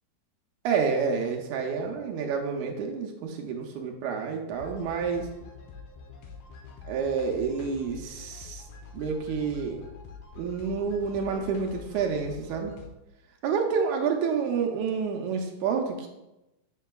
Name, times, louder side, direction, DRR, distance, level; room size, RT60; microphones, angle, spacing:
voice 1, 0.6-5.3 6.8-8.6 8.9-9.8 10.4-12.7 13.4-16.1, right 6 dB, 80° right, 2 dB, 2.0 m, -29 dB
sound 1, 4.5-12.9, left 5 dB, 85° left, 2.4 m, -46 dB
7.3 x 6.4 x 2.3 m, 0.96 s
omnidirectional pair, 3.7 m